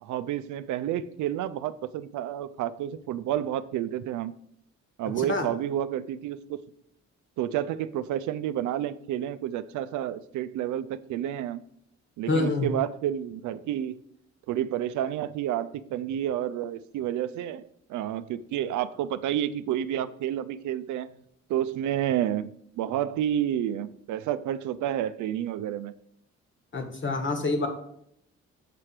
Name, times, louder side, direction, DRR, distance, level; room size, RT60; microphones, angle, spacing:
voice 1, 0.0-4.3 5.0-6.6 7.4-11.6 12.2-13.9 14.5-17.6 17.9-21.1 21.5-25.9, right 11 dB, 75° right, 0.5 m, -30 dB
voice 2, 12.3-12.7 26.7-27.7, left 3 dB, 40° left, 1.4 m, -27 dB
6.8 x 3.2 x 6.0 m
cardioid pair, 90°, 30 cm